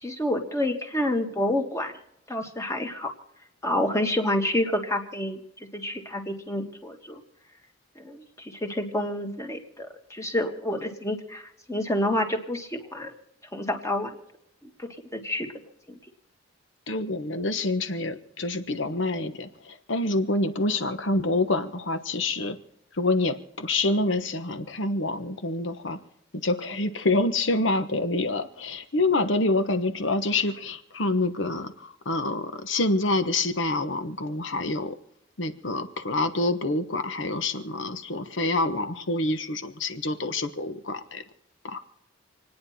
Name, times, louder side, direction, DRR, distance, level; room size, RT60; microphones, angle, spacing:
voice 1, 0.0-1.9 2.3-3.1 3.6-7.2 7.9-11.4 11.7-13.1 13.5-14.1 14.6-15.5 15.9-16.0, left 1 dB, 15° left, 4 dB, 1.8 m, -28 dB
voice 2, 16.9-22.6 22.9-26.0 26.3-35.0 35.4-41.2 41.6-41.8, left 2 dB, 65° left, 10 dB, 1.2 m, -27 dB
27.5 x 9.8 x 4.3 m, 0.81 s
head